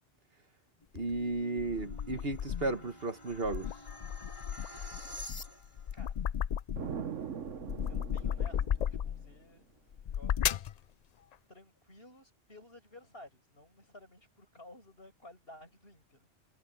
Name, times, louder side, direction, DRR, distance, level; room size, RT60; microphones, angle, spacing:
sound 1, 0.8-5.9, left 1 dB, 25° left, 3.9 m, -49 dB
sound 2, 0.9-2.8 3.3-7.1 7.4-9.3 9.9-10.8, left 9 dB, 70° left, 0.3 m, -35 dB
voice 1, 0.9-3.7, right 3 dB, 55° right, 1.7 m, -34 dB
voice 2, 5.9-6.4 7.8-9.7 10.0-10.7 11.5-16.3, left 1 dB, 55° left, 8.0 m, -55 dB
Explosion, 6.8-9.4, right 7 dB, 85° right, 1.4 m, -41 dB
omnidirectional pair, 1.2 m